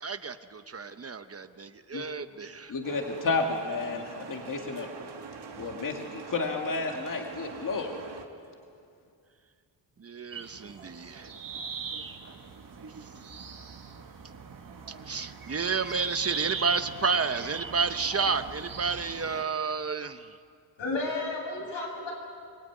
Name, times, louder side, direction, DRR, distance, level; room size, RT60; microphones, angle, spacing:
voice 1, 0.0-2.7 10.0-11.3 12.2-12.3 13.0-13.1 14.9-20.4, right 5 dB, 30° right, 10 dB, 0.9 m, -31 dB
voice 2, 2.7-4.9 5.6-7.9, left 3 dB, 45° left, 2 dB, 2.2 m, -31 dB
sound 1, 2.8-8.3, right 6 dB, 65° right, 2.3 m, -44 dB
sound 2, 10.3-19.4, right 5 dB, 50° right, 2.0 m, -40 dB
voice 3, 20.8-22.1, left 3 dB, 85° left, -1 dB, 7.9 m, -32 dB
24.0 x 23.5 x 9.5 m, 2.4 s
wide cardioid pair, 135°, 45 cm